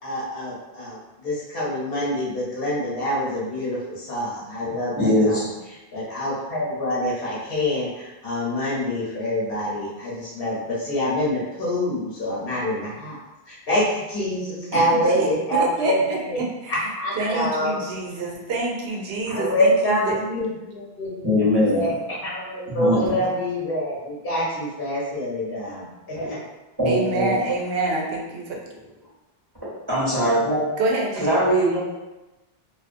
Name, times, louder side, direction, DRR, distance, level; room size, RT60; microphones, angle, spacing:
voice 1, 0.0-5.5 5.9-13.2 13.5-16.4 16.7-17.8 19.3-21.9 22.2-25.9 26.2-26.4, left 1 dB, 65° left, -7 dB, 1.1 m, -26 dB
voice 2, 5.0-5.5 21.2-21.9 22.7-23.1 26.1-26.3 26.8-27.3 29.9-30.6 31.2-31.8, equal, 25° right, -11 dB, 0.9 m, -21 dB
voice 3, 15.0-16.2 16.6-16.7 17.2-20.1 26.9-28.4 30.8-31.3, right 2 dB, 75° right, -1 dB, 0.8 m, -26 dB
2.4 x 2.3 x 2.5 m, 1.1 s
omnidirectional pair, 1.0 m